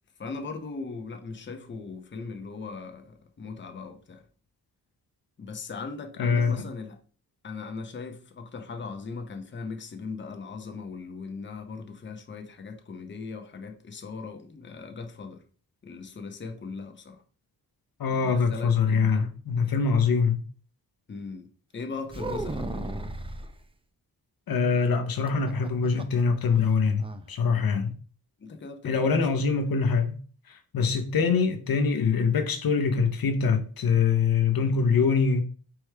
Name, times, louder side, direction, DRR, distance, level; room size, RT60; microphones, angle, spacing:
voice 1, 0.2-4.2 5.4-7.0 7.4-15.4 15.8-17.2 18.1-19.3 21.1-21.5 21.7-23.0 28.4-29.2, left 4 dB, 30° left, 0.7 m, -39 dB
voice 2, 6.2-6.6 18.0-20.4 24.5-27.9 28.8-30.2 30.5-35.4, left 5 dB, 65° left, 0.7 m, -24 dB
sound 1, 22.1-23.5 25.3-26.2 26.5-26.6 27.0-27.3, right 2 dB, 15° right, 0.4 m, -34 dB
4.6 x 3.1 x 3.3 m
cardioid pair, 85°, 38 cm